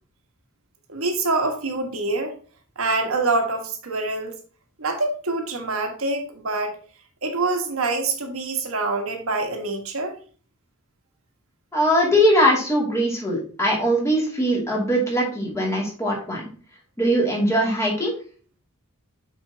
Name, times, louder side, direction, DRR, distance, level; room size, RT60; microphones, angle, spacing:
voice 1, 0.9-2.4 2.8-4.3 4.8-6.7 7.2-10.2, right 3 dB, 75° right, 3 dB, 1.4 m, -25 dB
voice 2, 11.7-16.4 17.0-18.1, equal, 15° left, -3 dB, 2.5 m, -21 dB
7.1 x 5.2 x 2.8 m, 0.41 s
head